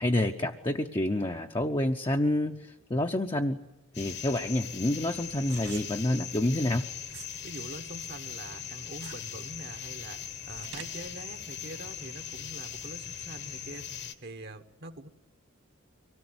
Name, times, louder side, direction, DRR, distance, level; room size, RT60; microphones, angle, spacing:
voice 1, 0.0-3.6 4.0-6.9, left 1 dB, 20° left, 3 dB, 0.8 m, -28 dB
sound 1, 3.7-7.4 7.8-11.1, right 8 dB, 65° right, 2.4 m, -48 dB
sound 2, 3.9-14.1, left 8 dB, 50° left, 1.4 m, -40 dB
voice 2, 7.4-15.1, right 2 dB, 50° right, 8 dB, 1.2 m, -44 dB
24.5 x 18.0 x 9.6 m, 0.95 s
head